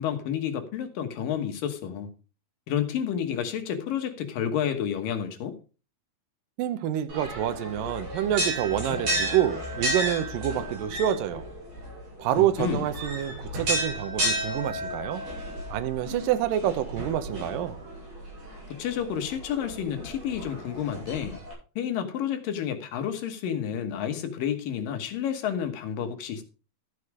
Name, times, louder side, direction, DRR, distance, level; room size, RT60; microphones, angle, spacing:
voice 1, 0.0-2.1 2.7-5.6 12.3-12.9 18.7-21.4 21.8-26.4, left 9 dB, 70° left, 2.9 m, -30 dB
voice 2, 6.6-11.5 12.2-15.2 15.7-17.8, right 11 dB, 75° right, 2.5 m, -27 dB
sound 1, 7.1-21.5, equal, 50° right, 7.5 m, -33 dB
13.0 x 6.8 x 4.8 m
omnidirectional pair, 4.1 m